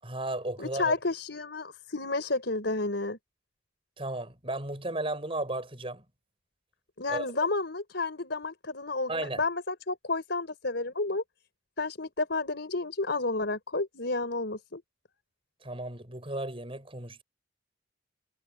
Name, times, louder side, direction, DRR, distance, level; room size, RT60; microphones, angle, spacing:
voice 1, 0.0-0.9 4.0-6.0 7.1-7.5 9.1-9.4 15.6-17.2, right 2 dB, 30° right, 6.7 m, -34 dB
voice 2, 0.6-3.2 7.0-11.2 11.8-14.8, left 3 dB, 60° left, 5.1 m, -31 dB
head